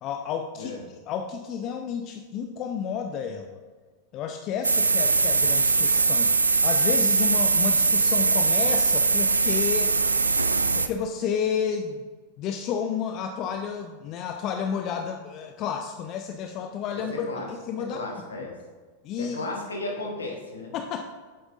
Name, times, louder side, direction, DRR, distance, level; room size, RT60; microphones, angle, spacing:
voice 1, 0.0-0.7 1.1-3.6 4.1-10.2 10.8-12.0 12.4-18.0 19.0-19.5 20.7-21.0, left 7 dB, 35° left, 6 dB, 0.4 m, -31 dB
sound 1, 4.6-10.9, right 4 dB, 75° right, 0.3 m, -21 dB
voice 2, 16.9-17.5 17.9-18.5 19.2-20.7, left 2 dB, 70° left, -1 dB, 1.6 m, -34 dB
7.8 x 7.6 x 2.6 m, 1.4 s
figure-of-eight pair, 90°, 0 cm